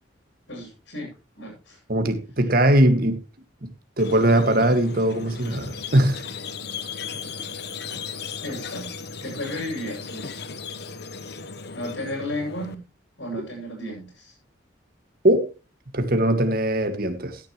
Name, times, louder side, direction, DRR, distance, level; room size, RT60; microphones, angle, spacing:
voice 1, 0.5-1.8 7.2-7.3 8.4-10.4 11.7-12.8 13.2-14.3, left 1 dB, 75° left, 7.0 m, -34 dB
voice 2, 1.9-3.2 3.6-3.7 4.0-6.2 15.2-15.5 15.9-17.4, right 1 dB, 50° right, 2.0 m, -20 dB
Squeak, 4.0-12.7, left 5 dB, 55° left, 1.1 m, -36 dB
16.0 x 10.5 x 3.2 m
head